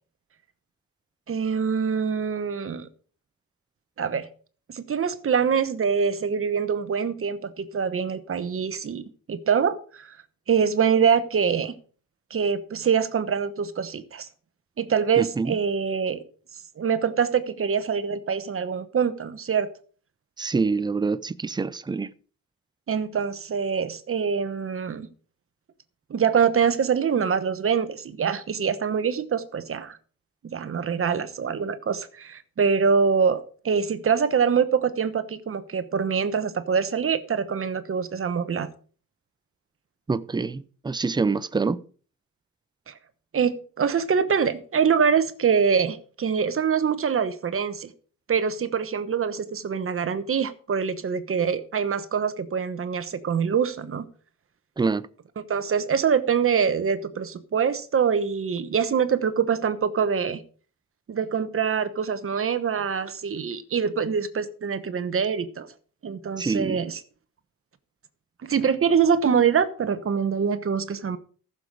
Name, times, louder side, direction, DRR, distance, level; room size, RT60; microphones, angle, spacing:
voice 1, 1.3-2.9 4.0-4.3 4.7-10.2 10.5-11.7 12.3-14.3 14.8-16.2 16.8-19.7 22.9-25.1 26.1-30.0 30.4-38.7 42.9-43.0 43.3-47.9 48.3-54.1 55.5-60.4 61.1-65.7 66.0-67.0 68.4-71.2, right 6 dB, 40° right, 1.1 m, -24 dB
voice 2, 15.2-15.6 20.4-22.1 40.1-41.8 54.8-55.1 66.4-66.8, right 4 dB, 15° right, 0.4 m, -26 dB
14.5 x 7.0 x 4.8 m
wide cardioid pair, 150°, 34 cm